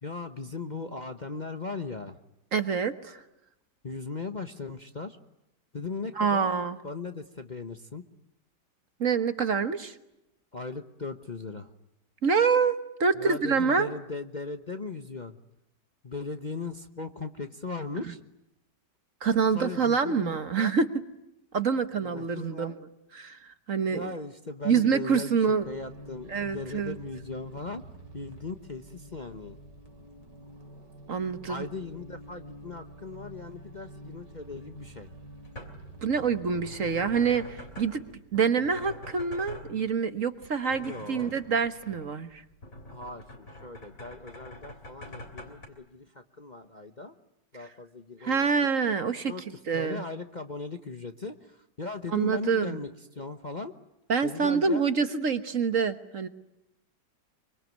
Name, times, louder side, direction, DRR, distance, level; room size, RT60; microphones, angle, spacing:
voice 1, 0.0-2.2 3.8-5.2 5.7-6.5 6.8-8.0 10.5-11.7 13.1-15.4 16.0-18.2 19.5-20.7 22.0-22.8 23.9-25.4 25.7-27.8 28.1-29.6 31.5-35.1 40.7-41.4 42.9-47.2 47.5-48.7 49.3-53.7 54.2-54.9, left 3 dB, 30° left, 7 dB, 1.1 m, -38 dB
voice 2, 2.5-3.2 6.2-6.8 9.0-9.9 12.2-13.9 19.2-20.9 21.5-22.7 23.1-23.4 23.7-24.0 24.6-25.7 26.3-26.9 31.1-31.6 36.0-38.0 38.3-42.4 48.2-49.3 49.7-50.0 52.1-52.8 54.1-56.3, right 5 dB, 50° right, 10 dB, 1.6 m, -26 dB
sound 1, 25.6-38.2, right 1 dB, 75° right, 3.7 m, -48 dB
sound 2, 35.0-45.7, left 1 dB, 50° left, 3.8 m, -46 dB
25.5 x 25.0 x 9.3 m, 0.87 s
omnidirectional pair, 1.9 m